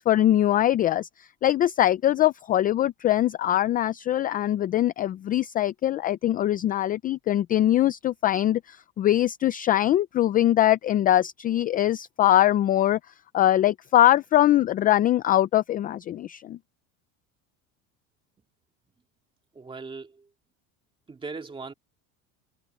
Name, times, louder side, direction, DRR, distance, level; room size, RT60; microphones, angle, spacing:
voice 1, 0.0-13.0 13.3-16.6, left 13 dB, 25° left, 0.4 m, -22 dB
voice 2, 19.5-20.3 21.1-21.7, right 4 dB, 15° right, 2.5 m, -38 dB
cardioid pair, 145°, 34 cm